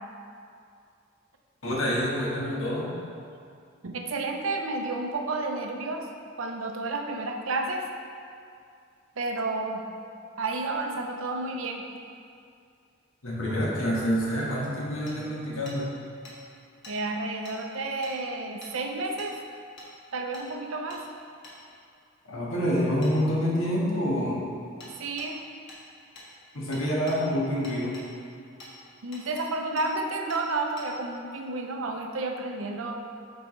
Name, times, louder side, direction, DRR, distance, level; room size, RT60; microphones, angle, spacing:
voice 1, 1.6-2.9 13.2-15.9 22.2-24.4 26.5-28.0, equal, 80° left, -4 dB, 1.4 m, -27 dB
voice 2, 3.8-6.1 6.4-7.9 9.2-9.8 10.4-11.9 16.9-19.4 20.1-21.0 25.0-25.4 29.0-33.0, right 2 dB, 80° right, 3 dB, 0.6 m, -31 dB
Hammer, 15.1-15.2 15.7-15.8 16.2-16.4 16.8-17.0 17.4-17.6 18.0-18.1 18.6-18.7 19.2-19.3 19.8-19.9 20.3-20.5 20.9-21.0 21.4-21.6 23.0-23.1 24.8-24.9 25.2-25.3 25.7-25.8 26.2-26.3 26.7-27.2 27.6-28.1 28.6-28.7 29.1-29.5 29.8-29.9 30.3-30.4 30.8-30.9, left 1 dB, 60° left, 1.3 m, -46 dB
8.9 x 4.5 x 3.2 m, 2.4 s
head